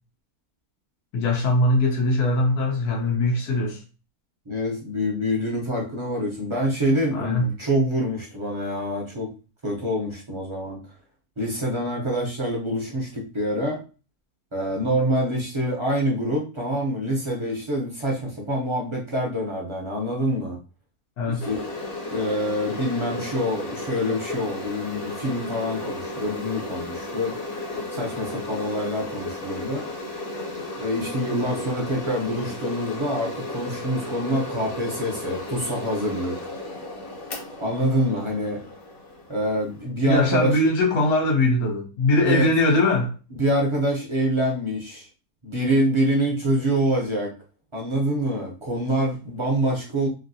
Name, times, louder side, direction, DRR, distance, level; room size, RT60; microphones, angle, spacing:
voice 1, 1.1-3.8 7.1-7.5 21.2-21.4 40.0-43.1, left 2 dB, 90° left, 1.3 m, -21 dB
voice 2, 4.5-9.3 9.6-10.8 11.4-13.8 14.5-20.6 21.3-21.7 22.1-27.3 27.9-29.9 30.8-36.4 37.6-38.6 39.3-40.6 42.2-42.5 43.3-45.1 45.4-47.3 47.7-50.1, equal, 35° right, 0.5 m, -26 dB
sound 1, 21.4-39.9, left 2 dB, 70° left, 1.4 m, -34 dB
3.2 x 2.6 x 2.6 m
omnidirectional pair, 1.6 m